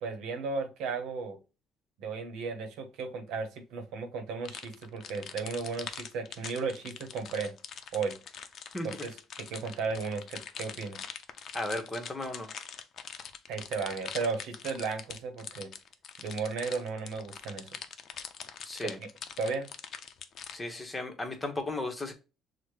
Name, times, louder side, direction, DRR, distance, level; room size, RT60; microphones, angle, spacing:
voice 1, 0.0-1.4 2.0-7.5 7.9-8.2 8.8-11.0 13.5-15.7 16.2-17.8 18.8-18.9 19.4-19.7, right 4 dB, 80° right, 6 dB, 0.8 m, -35 dB
sound 1, 4.4-20.6, left 7 dB, 55° left, 0.5 m, -43 dB
voice 2, 11.5-12.5 18.6-19.0 20.5-22.1, left 2 dB, 20° left, 6 dB, 1.0 m, -35 dB
6.2 x 2.1 x 3.1 m, 0.31 s
supercardioid pair, 85°, 0 cm